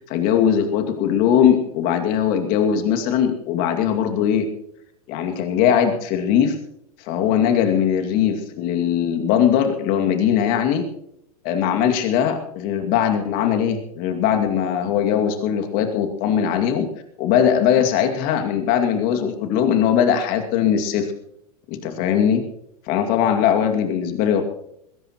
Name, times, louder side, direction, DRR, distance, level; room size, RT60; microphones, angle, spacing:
voice 1, 0.0-4.5 5.1-6.6 7.1-10.9 11.4-16.9 17.2-21.1 21.7-22.4 22.9-24.4, left 8 dB, 45° left, 5 dB, 2.4 m, -20 dB
20.5 x 17.0 x 3.1 m, 0.75 s
hypercardioid pair, 105°, 20 cm